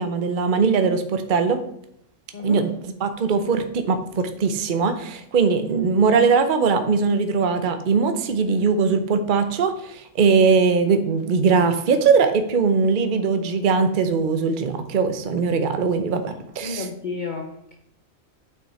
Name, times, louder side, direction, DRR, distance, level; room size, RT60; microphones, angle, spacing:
voice 1, 0.0-1.6 2.4-16.9, right 5 dB, 45° right, 8 dB, 0.8 m, -20 dB
voice 2, 16.6-17.8, left 4 dB, 40° left, 3 dB, 0.8 m, -31 dB
8.0 x 6.0 x 4.2 m, 0.77 s
omnidirectional pair, 1.4 m